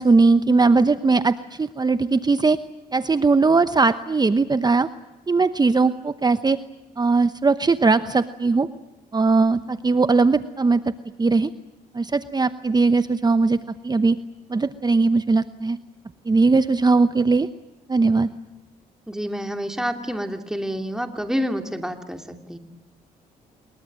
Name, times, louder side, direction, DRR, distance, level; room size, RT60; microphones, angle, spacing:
voice 1, 0.0-2.6 2.9-4.9 5.3-6.6 7.0-8.7 9.1-10.8 11.2-11.5 11.9-13.6 13.8-14.2 14.5-15.8 16.3-17.5 17.9-18.3, right 3 dB, 25° right, 12 dB, 0.9 m, -19 dB
voice 2, 19.1-22.6, equal, 5° right, 5 dB, 2.8 m, -28 dB
27.0 x 22.5 x 7.6 m, 1.1 s
supercardioid pair, 65°, 16 cm